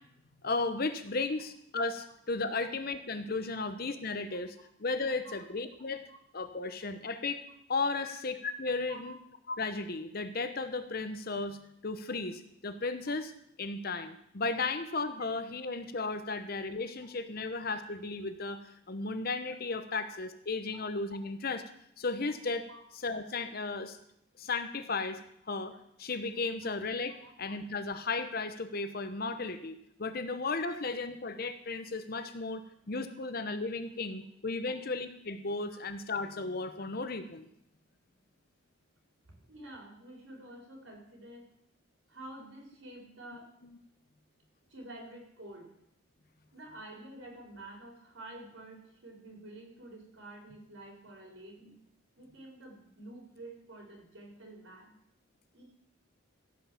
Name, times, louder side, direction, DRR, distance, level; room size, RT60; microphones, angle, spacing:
voice 1, 0.4-6.0 6.3-7.4 7.7-9.1 9.5-11.6 11.8-13.3 13.6-21.6 22.0-22.7 23.0-24.0 24.4-25.2 25.5-27.1 27.4-37.5 43.6-43.7, left 3 dB, 45° left, 10 dB, 0.9 m, -35 dB
voice 2, 39.3-41.5 42.1-43.5 44.7-45.8 46.5-51.7 52.2-55.0 55.5-55.6, right 1 dB, 65° right, 0 dB, 4.0 m, -49 dB
15.5 x 5.7 x 7.5 m, 0.73 s
head